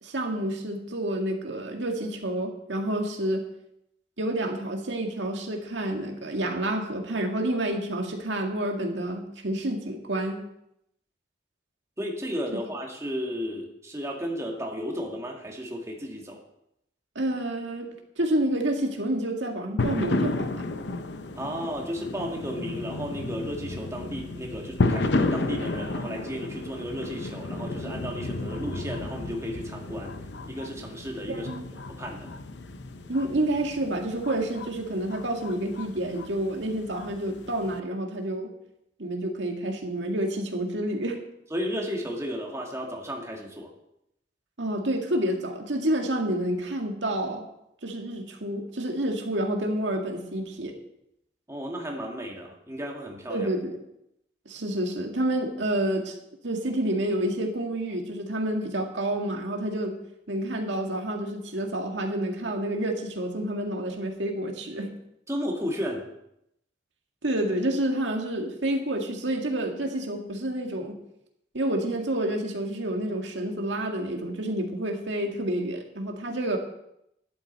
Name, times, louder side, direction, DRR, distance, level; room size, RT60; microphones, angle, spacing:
voice 1, 0.0-3.4 4.2-10.5 17.2-17.9 18.2-20.7 31.3-31.7 33.1-38.5 39.0-41.2 44.6-47.4 47.8-50.8 53.3-53.8 54.5-56.1 56.4-60.0 60.3-64.9 67.2-71.0 71.5-76.6, right 1 dB, 80° right, 3 dB, 1.9 m, -29 dB
voice 2, 12.0-16.4 21.4-30.2 30.5-32.3 41.5-43.7 51.5-53.5 65.3-66.1, equal, 15° right, 0 dB, 1.9 m, -34 dB
sound 1, 19.8-37.8, left 2 dB, 70° left, 0.7 m, -32 dB
12.5 x 11.5 x 4.2 m, 0.79 s
head